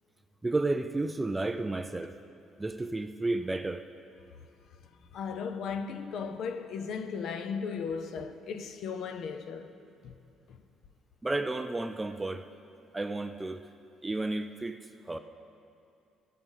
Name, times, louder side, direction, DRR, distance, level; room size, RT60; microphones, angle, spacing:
voice 1, 0.4-2.2 2.6-3.8 11.2-12.4 12.9-13.6 14.0-14.8 15.1-15.2, right 2 dB, 10° right, 0.3 m, -32 dB
voice 2, 5.1-9.7 10.0-10.1 10.5-10.6, left 6 dB, 55° left, 0.7 m, -36 dB
17.0 x 5.9 x 8.1 m
cardioid pair, 180°, 0 cm